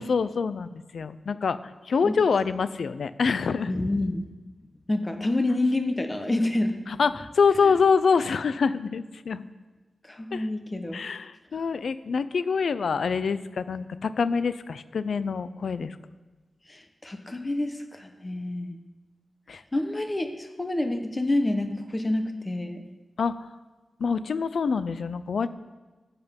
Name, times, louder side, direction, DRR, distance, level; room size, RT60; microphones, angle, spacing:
voice 1, 0.0-1.6 1.9-3.7 6.9-9.4 10.3-10.5 10.9-16.0 19.5-19.6 23.2-23.3 24.0-25.5, left 5 dB, 70° left, 14 dB, 0.5 m, -25 dB
voice 2, 3.7-4.2 4.9-6.8 10.0-11.0 16.7-18.8 19.7-22.8, left 2 dB, 20° left, 6 dB, 0.9 m, -28 dB
14.0 x 8.3 x 5.3 m, 1.2 s
wide cardioid pair, 170°, 0 cm